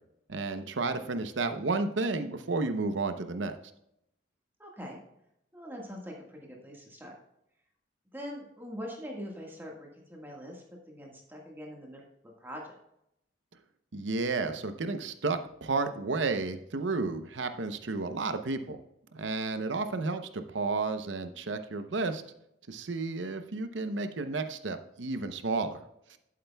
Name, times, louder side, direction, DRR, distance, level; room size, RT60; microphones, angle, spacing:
voice 1, 0.3-3.5 13.9-18.8 19.1-22.2 22.7-25.8 26.1-26.2, right 3 dB, 80° right, 9 dB, 0.8 m, -32 dB
voice 2, 4.6-5.0 5.5-7.1 8.1-12.8, equal, 10° right, -1 dB, 1.6 m, -43 dB
11.5 x 8.6 x 2.3 m, 0.79 s
head